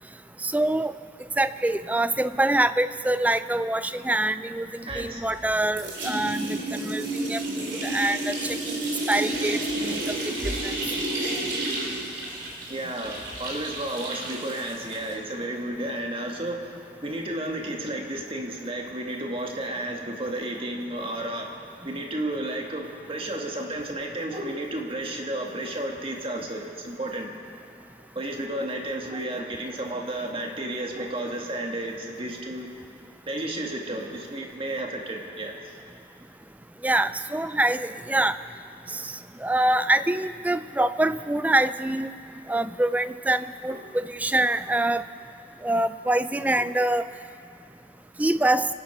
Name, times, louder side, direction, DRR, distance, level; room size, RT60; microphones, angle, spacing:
voice 1, 0.4-0.9 1.4-7.4 7.7-8.4 8.7-8.8 9.1-10.0 10.6-10.7 36.8-38.4 38.9-39.0 39.4-42.1 42.5-45.0 45.6-47.0 48.2-48.7, right 1 dB, 10° right, 13 dB, 0.3 m, -25 dB
voice 2, 4.9-5.3 12.7-21.5 21.8-27.3 28.1-32.7 33.3-35.5 38.8-38.9 43.7-43.9 46.6-46.7, right 1 dB, 30° right, 1 dB, 1.7 m, -32 dB
sound 1, 4.9-5.5 5.8-15.1, right 1 dB, 85° right, 3.1 m, -31 dB
25.5 x 9.6 x 5.8 m, 2.5 s
head